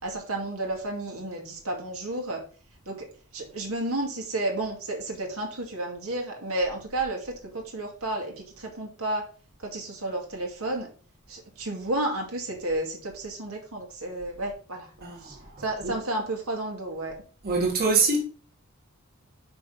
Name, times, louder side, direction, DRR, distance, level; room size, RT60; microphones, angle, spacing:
voice 1, 0.0-2.4 2.9-9.3 9.6-10.9 11.3-14.9 15.2-17.1, right 2 dB, 75° right, 2.4 m, -32 dB
voice 2, 15.0-16.0 17.4-18.2, right 4 dB, 45° right, 2.0 m, -25 dB
6.1 x 5.2 x 5.7 m
head